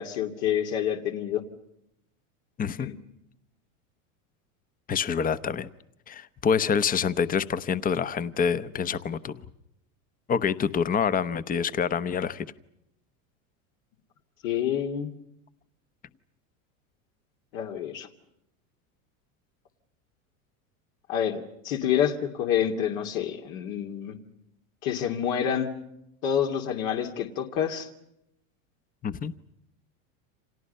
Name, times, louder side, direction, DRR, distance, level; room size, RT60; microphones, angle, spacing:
voice 1, 0.0-1.4 2.8-3.0 14.4-15.1 17.5-18.1 21.1-24.2 24.8-25.7 26.2-27.9, left 9 dB, 70° left, 3 dB, 2.7 m, -28 dB
voice 2, 2.6-2.9 4.9-5.7 6.1-9.4 10.3-12.5 29.0-29.3, left 7 dB, 20° left, 15 dB, 0.9 m, -26 dB
30.0 x 26.5 x 5.5 m, 0.81 s
supercardioid pair, 125°, 41 cm